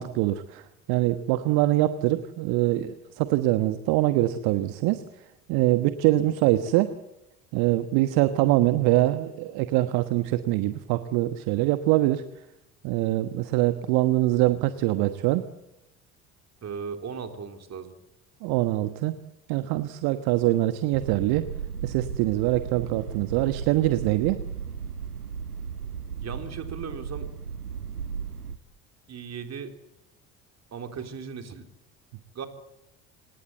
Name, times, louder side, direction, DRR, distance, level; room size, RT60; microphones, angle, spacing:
voice 1, 0.0-5.0 5.5-6.9 7.5-12.2 12.8-15.5 18.4-19.1 19.5-21.4 21.8-24.4, right 16 dB, 55° right, 12 dB, 1.3 m, -24 dB
voice 2, 16.6-17.9 26.2-27.3 29.1-29.7 30.7-31.7 32.3-32.5, right 6 dB, 35° right, 6 dB, 3.9 m, -37 dB
sound 1, 20.9-28.6, right 7 dB, 90° right, 0.9 m, -35 dB
26.5 x 20.0 x 8.2 m, 0.91 s
figure-of-eight pair, 60°, 44 cm